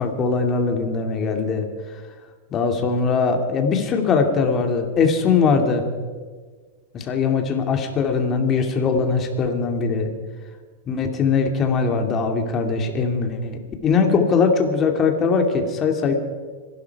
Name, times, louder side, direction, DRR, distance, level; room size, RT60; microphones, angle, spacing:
voice 1, 0.0-1.7 2.5-5.9 6.9-10.1 10.9-16.1, left 5 dB, 30° left, 4 dB, 2.4 m, -21 dB
25.5 x 12.0 x 4.8 m, 1.5 s
supercardioid pair, 130°, 0 cm